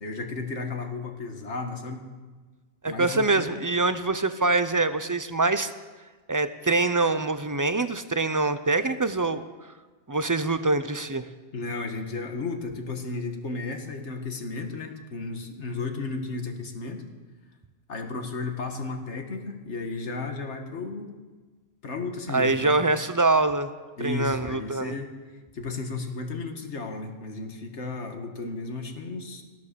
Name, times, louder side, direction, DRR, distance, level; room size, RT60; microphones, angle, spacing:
voice 1, 0.0-2.1 2.9-3.6 11.5-17.0 17.9-21.1 21.8-22.8 24.0-25.1 25.5-29.4, left 3 dB, 70° left, 5 dB, 1.8 m, -34 dB
voice 2, 2.8-5.7 6.3-9.4 10.1-11.3 22.3-23.7 24.0-24.9, right 3 dB, 30° right, 11 dB, 0.4 m, -24 dB
15.5 x 12.0 x 6.8 m, 1.3 s
omnidirectional pair, 1.2 m